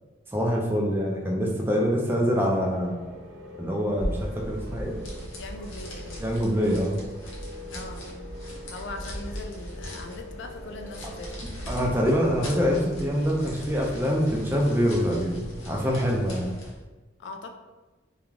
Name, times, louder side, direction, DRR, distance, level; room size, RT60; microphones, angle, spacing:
voice 1, 0.3-3.0 3.6-4.9 6.2-6.9 11.7-16.5, equal, 10° right, -1 dB, 0.4 m, -25 dB
sound 1, 2.5-15.9, left 1 dB, 85° right, 0.5 m, -45 dB
sound 2, 3.9-16.8, equal, 90° left, 0.7 m, -38 dB
voice 2, 5.4-6.2 7.7-8.0 8.7-11.3 17.2-17.5, left 2 dB, 70° left, 5 dB, 0.3 m, -40 dB
2.4 x 2.3 x 3.1 m, 1.2 s
head